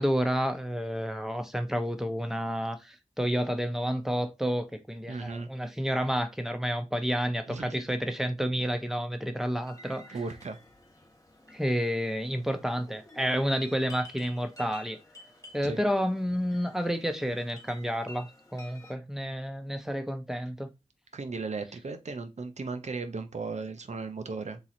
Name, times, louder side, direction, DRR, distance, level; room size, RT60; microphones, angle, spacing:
voice 1, 0.0-10.2 11.5-15.0 15.5-20.7, equal, 5° right, 0.8 m, -30 dB
voice 2, 5.1-5.5 7.5-7.8 10.1-10.6 15.6-15.8 21.1-24.6, right 4 dB, 70° right, 0.7 m, -36 dB
sound 1, 9.6-18.9, left 1 dB, 30° left, 1.1 m, -52 dB
3.8 x 3.0 x 4.2 m
wide cardioid pair, 65°, 12 cm